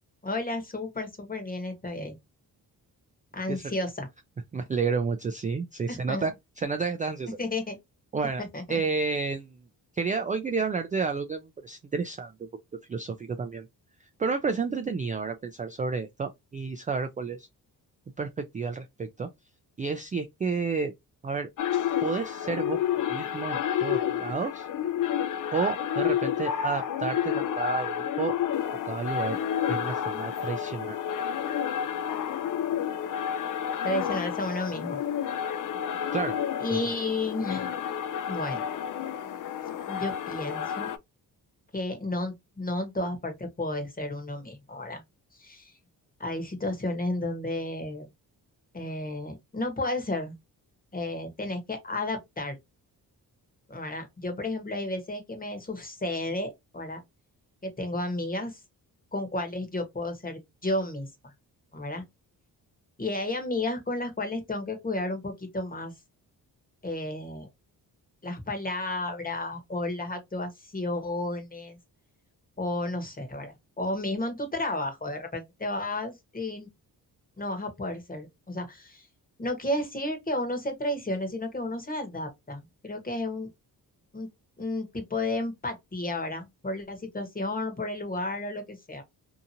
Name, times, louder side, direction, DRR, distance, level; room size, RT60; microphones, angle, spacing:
voice 1, 0.2-2.2 3.3-4.1 5.9-6.3 7.4-7.7 8.5-8.8 33.8-35.0 36.6-37.7 38.3-38.6 39.9-40.9 41.7-45.0 45.3-45.7 46.2-48.1 48.7-50.4 50.9-52.5 53.7-57.0 57.6-58.6 59.1-61.3 61.7-62.0 63.0-65.9 66.8-67.5 68.2-71.8 72.6-76.7 77.4-79.1 79.4-83.5 84.1-84.3 84.6-89.0, left 2 dB, 20° left, 1.1 m, -32 dB
voice 2, 4.5-7.4 8.1-9.7 9.9-12.5 12.9-13.7 14.0-17.5 18.2-19.3 19.8-20.9 21.2-21.5 22.0-22.8 23.1-24.7 25.5-28.4 28.8-29.4 29.7-31.0 36.1-36.4 36.7-36.9, right 4 dB, 20° right, 0.3 m, -31 dB
sound 1, 21.6-41.0, left 9 dB, 55° left, 0.5 m, -30 dB
2.8 x 2.4 x 2.6 m
cardioid pair, 85°, 39 cm